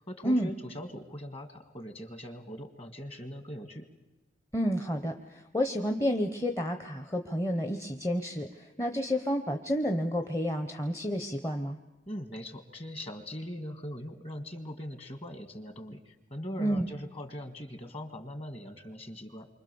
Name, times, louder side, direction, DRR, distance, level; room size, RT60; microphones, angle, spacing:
voice 1, 0.0-3.9 12.1-19.5, equal, 30° left, 8 dB, 1.8 m, -41 dB
voice 2, 4.5-11.8 16.6-16.9, equal, 15° left, 6 dB, 0.8 m, -30 dB
28.5 x 25.0 x 7.0 m, 1.1 s
head